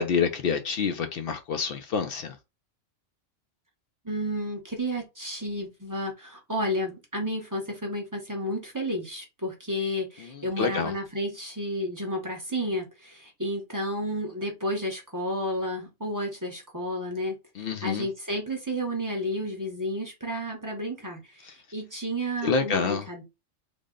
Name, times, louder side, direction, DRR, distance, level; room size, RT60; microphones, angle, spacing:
voice 1, 0.0-2.4 10.2-10.9 17.6-18.1 22.4-23.1, left 5 dB, 60° left, 0.6 m, -27 dB
voice 2, 4.0-23.2, equal, 20° right, 0.7 m, -32 dB
3.4 x 2.1 x 3.7 m
omnidirectional pair, 1.3 m